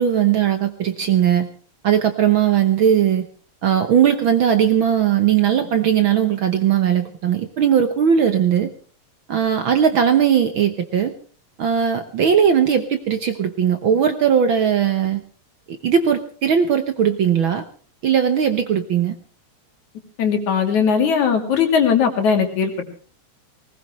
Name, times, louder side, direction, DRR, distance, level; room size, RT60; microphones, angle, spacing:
voice 1, 0.0-1.5 1.8-3.3 3.6-8.7 9.3-11.1 11.6-15.2 15.7-17.6 18.0-19.1, right 8 dB, 60° right, 8 dB, 1.4 m, -18 dB
voice 2, 20.2-22.7, left 6 dB, 75° left, 5 dB, 3.9 m, -18 dB
19.5 x 19.5 x 3.2 m, 0.41 s
omnidirectional pair, 3.3 m